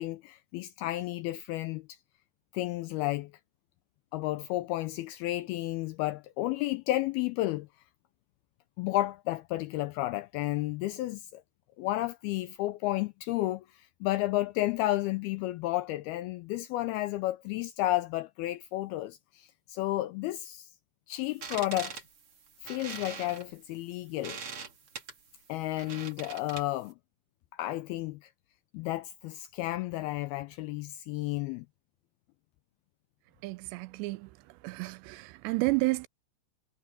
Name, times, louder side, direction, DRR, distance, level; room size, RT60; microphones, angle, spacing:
voice 1, 0.0-1.9 2.5-3.3 4.1-7.7 8.8-11.4 11.8-13.7 14.0-20.7 21.1-22.0 22.6-24.4 25.5-26.9 27.6-28.3 28.7-31.7, left 16 dB, 85° left, 2.2 m, -32 dB
sound 1, 21.3-26.9, right 5 dB, 40° right, 2.3 m, -43 dB
voice 2, 33.4-34.3 34.6-36.1, right 23 dB, 85° right, 2.8 m, -31 dB
omnidirectional pair, 5.0 m